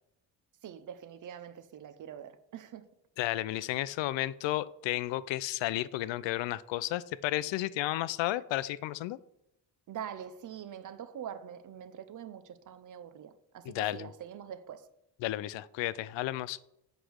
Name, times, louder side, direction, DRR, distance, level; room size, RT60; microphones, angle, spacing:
voice 1, 0.6-2.8 9.9-14.9, right 9 dB, 45° right, 0.7 m, -44 dB
voice 2, 3.2-9.2 13.7-14.1 15.2-16.6, left 15 dB, 80° left, 0.5 m, -32 dB
8.2 x 5.0 x 6.3 m
cardioid pair, 165°, 43 cm